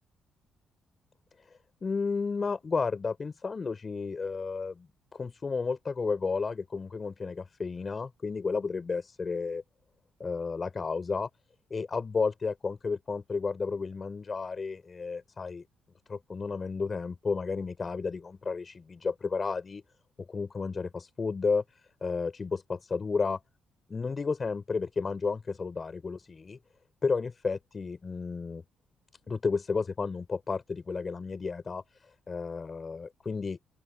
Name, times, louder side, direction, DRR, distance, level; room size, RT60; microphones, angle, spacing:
voice 1, 1.8-4.9 5.1-9.6 10.2-11.3 11.7-15.6 16.1-19.8 20.2-21.6 22.0-23.4 23.9-26.6 27.0-28.6 29.3-33.6, left 4 dB, 35° left, 4.8 m, -32 dB
open air
cardioid pair, 90°, 0 cm